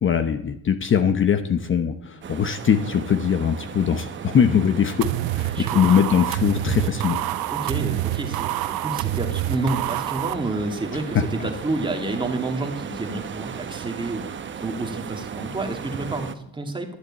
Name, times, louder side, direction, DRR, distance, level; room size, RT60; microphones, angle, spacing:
voice 1, 0.0-7.2 11.1-11.2, left 7 dB, 35° left, 9 dB, 0.9 m, -21 dB
sound 1, 2.2-16.3, right 7 dB, 35° right, 1.0 m, -36 dB
sound 2, 5.0-10.3, right 16 dB, 80° right, 0.8 m, -27 dB
voice 2, 5.4-6.0 6.6-6.7 7.5-16.9, right 2 dB, 15° right, 3 dB, 2.3 m, -29 dB
11.5 x 9.9 x 8.6 m, 0.75 s
cardioid pair, 130°, 35 cm